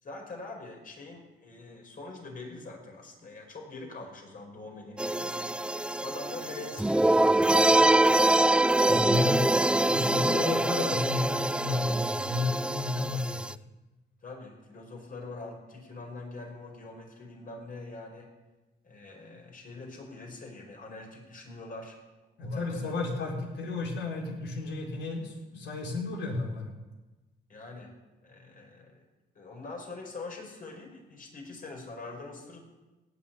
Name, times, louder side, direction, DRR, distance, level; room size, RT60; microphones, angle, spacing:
voice 1, 0.0-5.4 6.0-7.6 9.2-9.4 10.2-10.5 14.2-18.3 18.8-22.0 22.4-22.9 27.5-27.9 28.2-29.0 29.4-32.6, left 3 dB, 45° left, 1 dB, 5.2 m, -44 dB
sound 1, 5.0-13.5, right 1 dB, 5° right, 0.4 m, -24 dB
voice 2, 8.8-9.4 9.8-13.5 22.4-26.7, left 3 dB, 65° left, 0 dB, 4.7 m, -32 dB
17.0 x 7.3 x 9.2 m, 1.2 s
cardioid pair, 90°, 20 cm